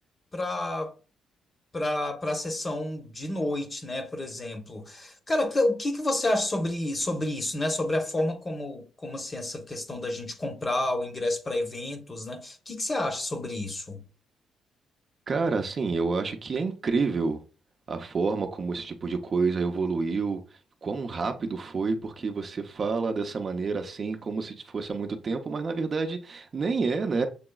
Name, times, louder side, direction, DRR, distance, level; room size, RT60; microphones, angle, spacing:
voice 1, 0.3-0.9 1.7-14.0, left 1 dB, 30° left, 0.9 m, -30 dB
voice 2, 15.3-17.4 17.9-20.4 20.8-27.3, right 4 dB, 40° right, 0.6 m, -28 dB
6.8 x 2.9 x 2.3 m
cardioid pair, 90°, 0 cm